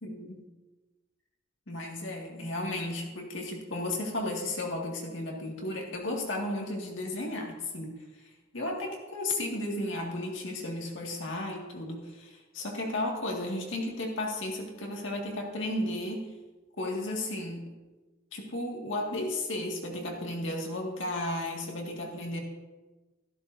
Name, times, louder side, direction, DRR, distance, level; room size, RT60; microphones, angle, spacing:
voice 1, 0.0-0.5 1.7-7.9 8.5-16.3 16.8-17.6 18.3-22.4, left 1 dB, 65° left, 0 dB, 2.0 m, -34 dB
13.5 x 12.5 x 2.7 m, 1.2 s
head